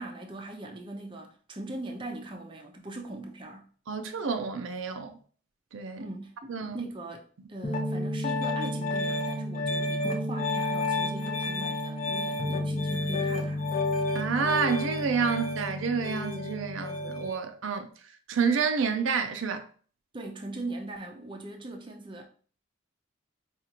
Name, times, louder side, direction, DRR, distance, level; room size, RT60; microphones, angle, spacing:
voice 1, 0.0-3.7 6.0-13.7 20.1-22.2, right 2 dB, 25° right, 0.5 m, -40 dB
voice 2, 3.9-5.1 5.7-6.0 6.5-6.8 14.1-17.9 18.3-19.7, right 5 dB, 75° right, 0.5 m, -29 dB
Piano, 7.6-17.3, left 2 dB, 35° left, 0.7 m, -30 dB
4.9 x 2.4 x 2.8 m
head